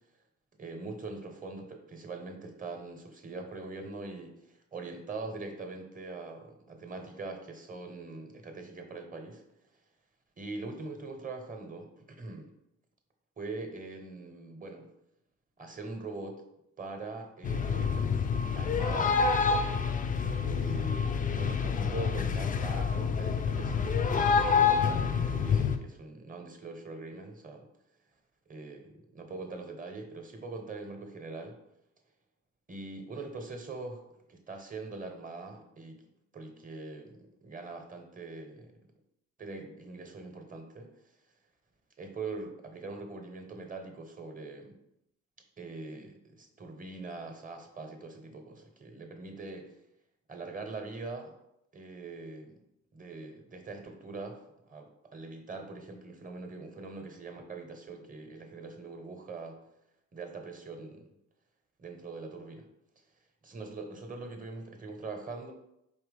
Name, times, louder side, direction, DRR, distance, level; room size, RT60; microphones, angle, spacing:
voice 1, 0.6-9.4 10.4-12.5 13.4-14.9 15.6-16.4 16.8-19.5 20.4-27.7 28.5-31.6 32.7-34.0 34.3-36.0 36.3-38.7 39.4-40.9 42.0-44.8 45.6-49.7 50.3-51.3 51.7-52.6 52.9-54.4 54.7-59.6 60.1-61.1 61.8-62.7 63.4-65.5, right 3 dB, 25° right, 4 dB, 0.8 m, -42 dB
sound 1, 17.4-25.8, left 6 dB, 30° left, 0.4 m, -27 dB
4.6 x 2.9 x 3.4 m, 0.82 s
cardioid pair, 90°, 30 cm